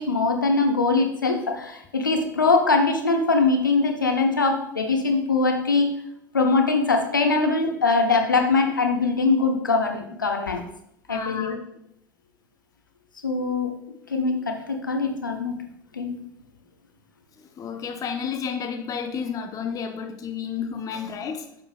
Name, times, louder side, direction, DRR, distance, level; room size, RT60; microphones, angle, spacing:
voice 1, 0.0-5.9 6.3-10.6 11.1-11.6 13.2-13.7 14.1-15.6 15.9-16.2, left 3 dB, 90° left, 4 dB, 0.8 m, -22 dB
voice 2, 11.1-11.5 17.4-21.5, left 6 dB, 35° left, 6 dB, 0.8 m, -31 dB
8.8 x 5.3 x 2.4 m, 0.77 s
figure-of-eight pair, 75°, 10 cm